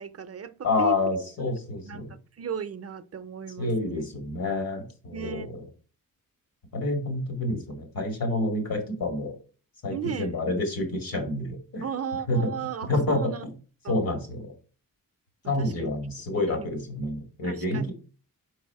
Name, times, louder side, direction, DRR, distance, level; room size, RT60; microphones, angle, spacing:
voice 1, 0.0-1.0 1.8-4.0 5.1-5.5 9.9-10.4 11.8-13.5 13.8-13.9 15.6-15.9 16.5-16.8 17.4-17.9, right 7 dB, 45° right, 0.5 m, -35 dB
voice 2, 0.6-2.1 3.6-5.5 6.7-9.3 9.8-11.8 12.3-12.5 12.9-13.3 13.9-14.5 15.5-17.9, left 2 dB, 80° left, 2.2 m, -28 dB
4.9 x 4.7 x 4.6 m
wide cardioid pair, 115°, 35 cm